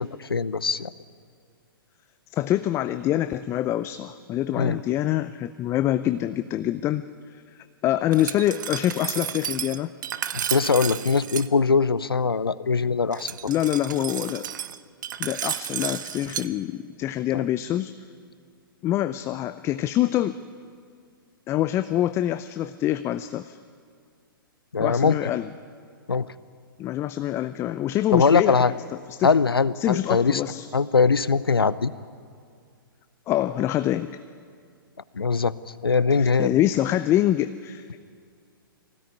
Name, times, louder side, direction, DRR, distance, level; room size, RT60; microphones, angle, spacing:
voice 1, 0.2-0.9 4.5-4.8 10.3-13.3 17.3-17.4 24.7-25.1 26.1-26.3 28.1-28.7 29.2-30.4 30.7-31.9 35.1-35.5 35.8-36.6, left 4 dB, 85° left, 17 dB, 0.7 m, -21 dB
voice 2, 2.3-7.0 7.3-7.4 7.8-9.9 13.5-14.5 15.2-17.9 18.8-20.4 21.5-23.6 24.8-25.5 26.8-28.6 29.1-29.3 29.8-30.7 33.3-34.2 36.1-38.0, left 13 dB, 20° left, 12 dB, 0.5 m, -25 dB
Glass, 8.1-11.5 13.1-16.5, right 10 dB, 55° right, 0.8 m, -32 dB
20.5 x 16.5 x 9.6 m, 2.2 s
figure-of-eight pair, 120°, 12 cm